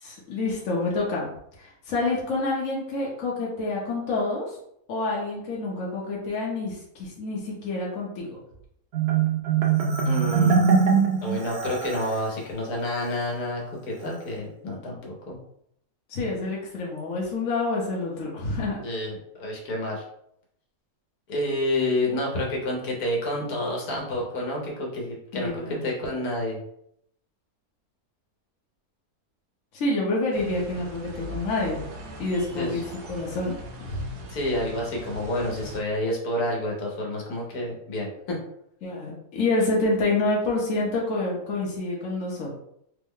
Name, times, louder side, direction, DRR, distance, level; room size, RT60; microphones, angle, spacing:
voice 1, 0.0-1.3 1.6-4.6 4.9-8.4 16.1-18.8 25.3-25.9 29.7-31.8 32.2-32.8 33.1-33.6 33.9-34.0 38.8-42.5, left 2 dB, 60° left, -4 dB, 1.2 m, -27 dB
Marimba xylophone, 8.9-12.3, right 6 dB, 60° right, 0.7 m, -22 dB
voice 2, 10.0-10.6 11.2-15.4 18.8-20.0 21.3-26.6 32.6-32.8 34.3-38.4, left 1 dB, 80° left, -2 dB, 1.4 m, -29 dB
sound 1, 30.3-35.8, equal, 85° right, 1.1 m, -40 dB
3.5 x 2.1 x 3.6 m, 0.73 s
omnidirectional pair, 1.6 m